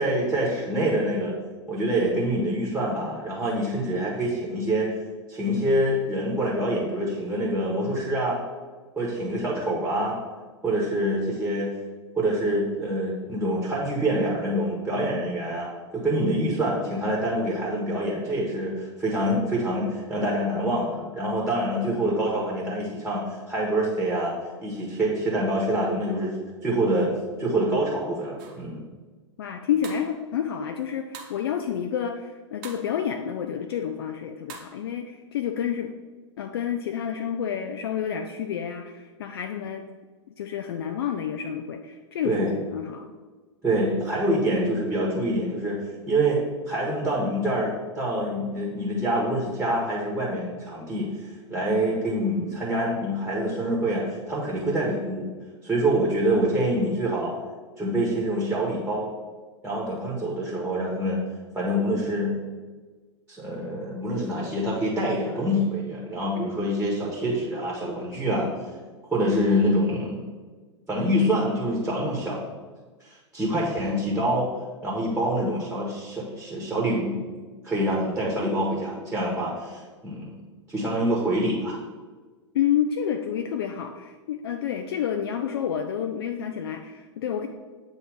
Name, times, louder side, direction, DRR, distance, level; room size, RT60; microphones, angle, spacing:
voice 1, 0.0-1.3 1.7-4.9 5.3-8.4 9.0-10.2 10.6-11.7 12.2-24.3 24.6-26.4 26.6-27.1 27.4-28.8 42.2-42.6 43.6-55.3 55.6-57.4 57.8-59.1 59.6-61.2 61.5-62.4 63.3-68.5 69.1-70.2 70.9-72.5 73.0-74.5 74.8-77.2 77.6-80.4 80.7-81.8, right 1 dB, 5° right, -4 dB, 1.2 m, -26 dB
sound 1, 28.4-28.7 29.8-30.1 31.1-31.4 32.6-32.9 34.5-34.8, right 5 dB, 40° right, 0.9 m, -42 dB
voice 2, 29.4-35.9 36.4-39.8 40.4-43.1 82.5-87.5, left 8 dB, 55° left, 5 dB, 0.4 m, -29 dB
7.6 x 2.7 x 4.8 m, 1.4 s
figure-of-eight pair, 100°, 16 cm